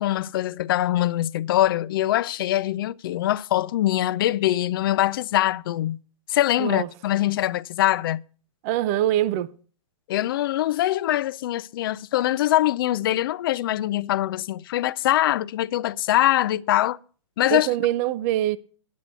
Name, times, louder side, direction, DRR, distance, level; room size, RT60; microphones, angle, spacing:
voice 1, 0.0-6.0 6.3-8.2 10.1-17.0 17.4-17.7, left 14 dB, 45° left, 0.4 m, -23 dB
voice 2, 6.6-6.9 8.6-9.5 17.5-18.6, right 13 dB, 30° right, 0.5 m, -23 dB
10.5 x 8.0 x 6.8 m
hypercardioid pair, 140°, 16 cm